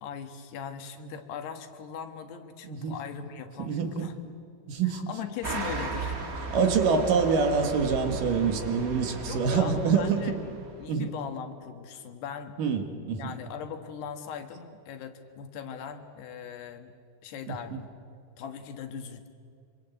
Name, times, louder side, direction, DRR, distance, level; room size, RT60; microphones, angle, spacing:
voice 1, 0.0-4.2 4.8-6.2 9.3-12.5 13.2-16.9 17.2-17.9 18.4-19.3, left 7 dB, 85° left, 7 dB, 3.6 m, -40 dB
voice 2, 3.6-4.1 4.7-5.1 6.5-10.4 10.9-11.1 12.6-13.2 17.5-17.8, right 5 dB, 60° right, 6 dB, 3.0 m, -26 dB
sound 1, 5.4-10.9, right 3 dB, 40° right, 1.2 m, -36 dB
25.0 x 24.5 x 8.3 m, 2.4 s
omnidirectional pair, 4.6 m